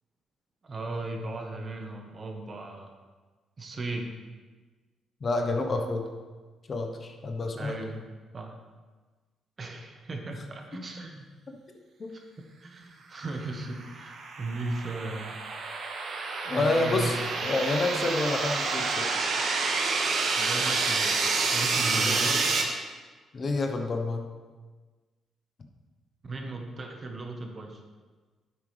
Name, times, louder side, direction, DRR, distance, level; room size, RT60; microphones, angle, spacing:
voice 1, 0.6-2.9 3.6-4.1 7.6-8.0 8.3-8.6 9.6-11.2 12.1-12.3 12.6-15.3 16.4-17.1 20.4-21.2 21.5-22.5 26.2-27.8, right 2 dB, 40° right, 3 dB, 1.3 m, -36 dB
voice 2, 5.2-6.0 6.7-7.8 11.7-12.1 16.5-19.1 22.0-22.4 23.3-24.3, left 2 dB, 40° left, 4 dB, 1.1 m, -29 dB
sound 1, 13.6-22.6, right 4 dB, 60° right, 1.3 m, -28 dB
9.8 x 7.8 x 3.4 m, 1.4 s
cardioid pair, 90°, 0 cm